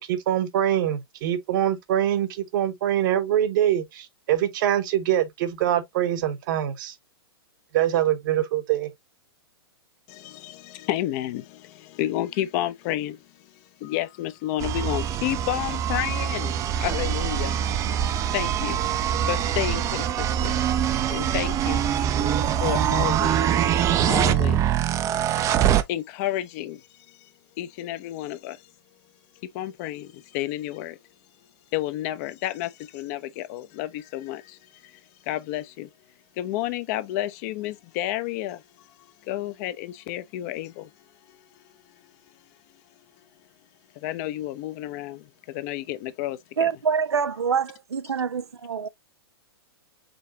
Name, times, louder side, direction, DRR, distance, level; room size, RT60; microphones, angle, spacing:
voice 1, 0.1-6.9 7.7-8.9, right 11 dB, 50° right, 1.1 m, -24 dB
voice 2, 10.1-13.2 13.8-16.5 16.8-17.5 18.3-18.8 19.3-21.9 22.6-23.4 24.0-24.7 25.9-27.3 27.6-28.6 29.5-31.0 31.7-35.0 35.3-35.9 36.4-38.6 39.2-40.9 41.3-41.4 44.0-46.7, left 14 dB, 40° left, 0.7 m, -31 dB
sound 1, 14.6-25.8, right 10 dB, 25° right, 0.5 m, -24 dB
voice 3, 46.6-48.9, right 6 dB, 85° right, 0.4 m, -26 dB
5.2 x 3.7 x 2.6 m
hypercardioid pair, 115°, 13 cm